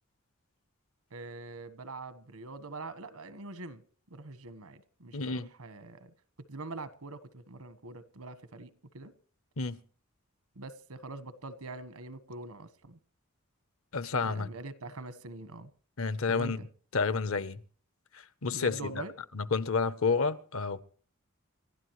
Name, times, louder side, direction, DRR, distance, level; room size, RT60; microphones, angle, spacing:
voice 1, 1.1-3.8 4.1-6.1 6.5-9.1 10.6-13.0 14.2-15.7 16.3-16.7 18.5-19.1, right 2 dB, 85° right, 1.3 m, -44 dB
voice 2, 5.1-5.5 9.6-9.8 13.9-14.5 16.0-16.6 16.9-17.6 18.1-19.0 19.3-20.8, left 4 dB, 70° left, 0.8 m, -30 dB
28.5 x 12.5 x 3.1 m
head